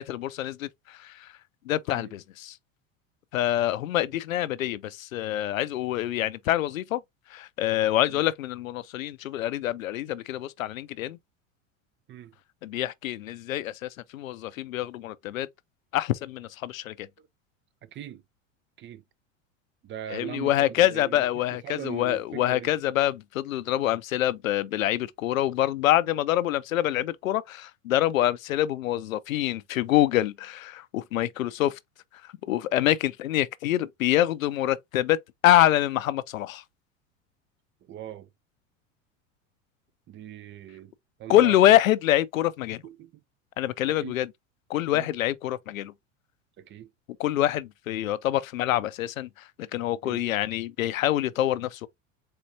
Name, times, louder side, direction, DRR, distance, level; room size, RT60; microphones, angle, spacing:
voice 1, 0.0-1.3 1.7-2.6 3.3-7.0 7.3-11.2 12.6-15.5 15.9-17.1 20.1-31.8 32.2-36.6 41.3-42.8 43.6-44.3 44.7-45.9 47.2-51.9, left 13 dB, 90° left, 0.6 m, -26 dB
voice 2, 17.8-18.2 18.8-19.0 19.8-22.7 37.8-38.3 40.1-40.9 41.2-41.8 42.8-43.2 43.9-44.1 44.9-45.1 46.6-46.9 50.0-50.2, right 10 dB, 30° right, 0.6 m, -41 dB
4.4 x 3.9 x 2.7 m
hypercardioid pair, 95°, 40 cm